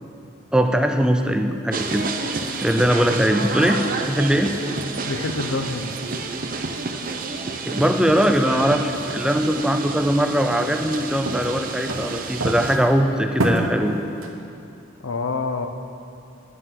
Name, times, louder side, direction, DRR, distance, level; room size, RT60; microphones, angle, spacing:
voice 1, 0.5-2.1 2.6-3.8 4.1-4.5 7.7-13.9, equal, 5° right, 5 dB, 0.4 m, -20 dB
sound 1, 1.0-14.3, right 1 dB, 85° right, 1.2 m, -34 dB
nyc washington square jazz, 1.7-12.8, right 3 dB, 45° right, 0.7 m, -30 dB
voice 2, 5.1-5.9 15.0-15.7, left 3 dB, 85° left, 7 dB, 0.7 m, -26 dB
9.8 x 9.8 x 5.8 m, 2.6 s
head